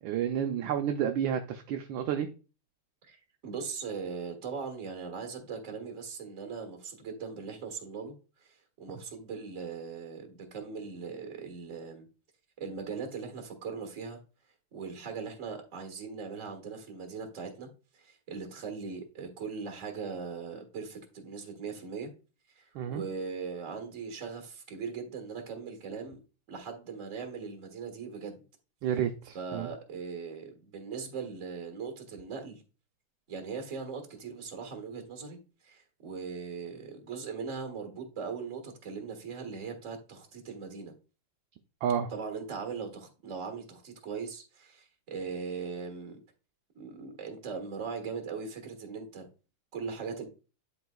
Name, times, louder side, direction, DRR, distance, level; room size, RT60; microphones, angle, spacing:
voice 1, 0.0-2.3 22.7-23.0 28.8-29.7 41.8-42.1, right 9 dB, 75° right, 1.3 m, -30 dB
voice 2, 3.0-8.1 8.4-12.1 12.6-14.2 14.7-17.7 18.0-22.1 22.6-26.2 26.5-28.4 29.3-32.6 33.3-35.4 35.6-40.9 42.1-46.2 46.8-49.3 49.7-50.3, right 5 dB, 40° right, 1.8 m, -39 dB
11.0 x 4.0 x 2.3 m
omnidirectional pair, 2.3 m